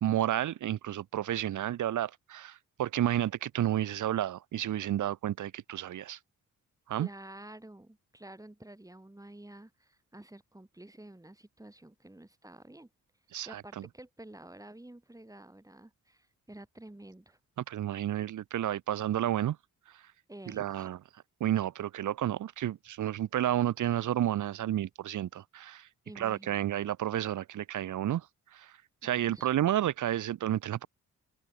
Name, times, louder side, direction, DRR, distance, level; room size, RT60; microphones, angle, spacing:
voice 1, 0.0-6.2 6.9-7.1 13.3-13.9 17.7-19.6 20.5-21.0 21.4-25.9 26.2-28.3 28.5-28.7 29.0-30.9, right 12 dB, 70° right, 0.8 m, -31 dB
voice 2, 6.9-12.9 13.4-17.4 20.3-20.9 26.0-26.7 29.0-29.5, right 1 dB, 10° right, 7.0 m, -50 dB
cardioid pair, 85°, 31 cm